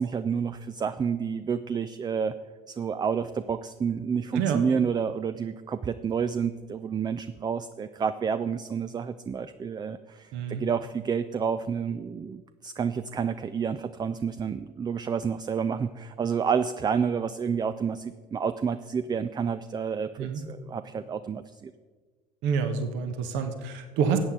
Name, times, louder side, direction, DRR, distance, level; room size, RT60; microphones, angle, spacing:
voice 1, 0.0-2.4 2.7-21.7, right 6 dB, 20° right, 12 dB, 0.4 m, -29 dB
voice 2, 10.3-10.6 20.2-20.4 22.4-24.2, right 6 dB, 60° right, 7 dB, 1.2 m, -27 dB
14.0 x 8.4 x 3.7 m, 1.4 s
hypercardioid pair, 65°, 21 cm